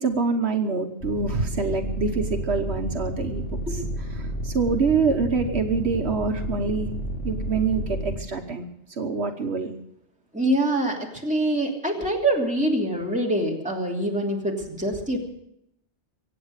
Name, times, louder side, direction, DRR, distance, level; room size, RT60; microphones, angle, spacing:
voice 1, 0.0-3.5 4.2-6.9 7.2-9.7, right 4 dB, 70° right, 4 dB, 1.4 m, -25 dB
sound 1, 1.0-8.2, equal, 65° left, 3.1 m, -31 dB
voice 2, 10.3-15.2, right 1 dB, 5° right, -2 dB, 2.9 m, -25 dB
23.5 x 8.8 x 6.6 m, 0.77 s
omnidirectional pair, 1.2 m